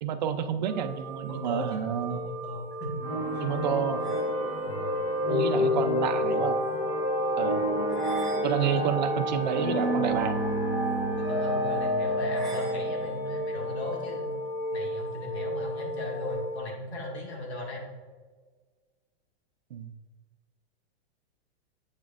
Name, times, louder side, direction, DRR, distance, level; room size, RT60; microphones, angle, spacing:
voice 1, 0.0-2.2 3.4-4.1 5.3-6.6 7.4-7.6 8.4-10.4 19.7-19.9, right 8 dB, 45° right, 8 dB, 0.4 m, -29 dB
sound 1, 0.6-16.6, equal, ahead, 1.1 m, -35 dB
voice 2, 1.3-3.1 3.3-3.4 4.7-4.9 8.6-8.9 11.2-14.3 14.7-17.8, left 1 dB, 75° left, 0 dB, 2.0 m, -37 dB
sound 2, 3.0-14.3, left 1 dB, 25° left, 0.7 m, -29 dB
8.0 x 6.0 x 2.5 m, 1.4 s
supercardioid pair, 175°, 33 cm